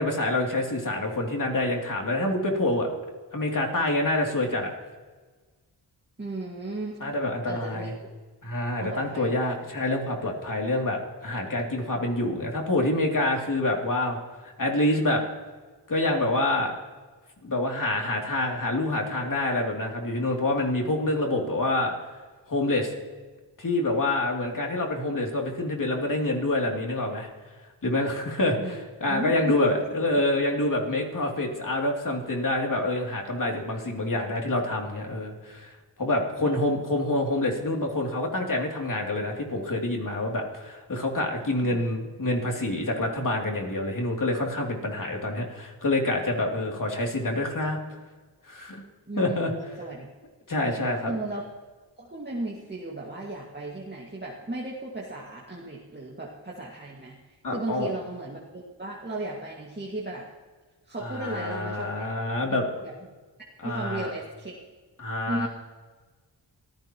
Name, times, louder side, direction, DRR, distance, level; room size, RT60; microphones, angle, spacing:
voice 1, 0.0-2.9 3.3-4.7 7.0-7.9 8.4-14.2 14.4-15.2 15.9-16.7 17.4-21.9 22.5-22.9 23.6-27.3 27.8-35.7 36.0-47.8 48.5-48.8 49.2-49.5 50.5-51.1 57.4-57.9 61.0-62.6 63.6-64.1 65.0-65.5, left 1 dB, 45° left, 0 dB, 2.9 m, -27 dB
voice 2, 6.2-7.0 7.5-7.9 8.8-9.4 28.6-28.8 29.0-29.7 36.4-36.6 49.1-50.1 51.1-51.4 52.0-57.2 57.5-60.3 60.9-62.1 62.5-62.9 63.6-64.6 65.3-65.5, right 2 dB, 25° right, -4 dB, 2.1 m, -35 dB
26.0 x 14.5 x 3.0 m, 1.4 s
cardioid pair, 65°, 43 cm